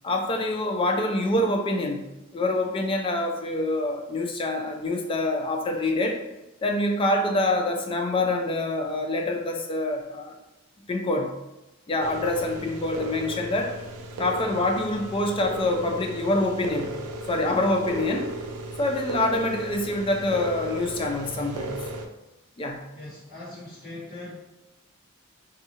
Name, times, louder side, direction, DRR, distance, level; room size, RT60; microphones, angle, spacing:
voice 1, 0.0-2.1 2.3-6.2 6.6-10.3 10.9-11.3 11.9-13.8 14.2-16.9 17.3-18.3 18.8-21.9 22.6-22.8, left 2 dB, 25° left, 2 dB, 0.3 m, -26 dB
sound 1, 12.0-22.1, right 1 dB, 85° right, 0.4 m, -36 dB
voice 2, 22.9-24.3, left 2 dB, 50° left, -9 dB, 1.2 m, -40 dB
2.7 x 2.4 x 2.7 m, 0.99 s
head